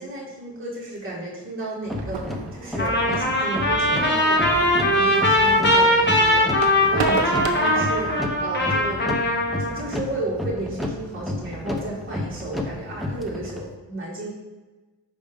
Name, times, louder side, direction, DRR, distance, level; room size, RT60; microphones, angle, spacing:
voice 1, 0.0-9.1 9.6-14.3, right 2 dB, 30° right, -6 dB, 2.0 m, -33 dB
sound 1, 1.9-13.7, left 1 dB, ahead, 0.6 m, -32 dB
sound 2, 2.0-8.3, right 5 dB, 85° right, 0.8 m, -34 dB
Trumpet, 2.8-9.8, left 1 dB, 25° left, 1.1 m, -20 dB
5.1 x 4.2 x 5.1 m, 1.2 s
wide cardioid pair, 120°, 43 cm